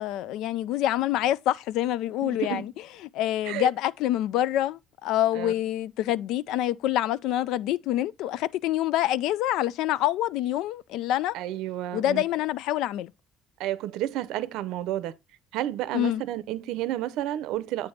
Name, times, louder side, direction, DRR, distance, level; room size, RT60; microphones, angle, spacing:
voice 1, 0.0-2.7 3.1-11.4 11.9-13.1 15.9-16.2, left 13 dB, 75° left, 0.4 m, -26 dB
voice 2, 2.2-2.6 3.4-3.7 5.3-5.5 11.3-12.2 13.6-15.2 15.5-17.9, right 13 dB, 85° right, 0.7 m, -31 dB
8.9 x 3.4 x 5.6 m
cardioid pair, 180°, 0 cm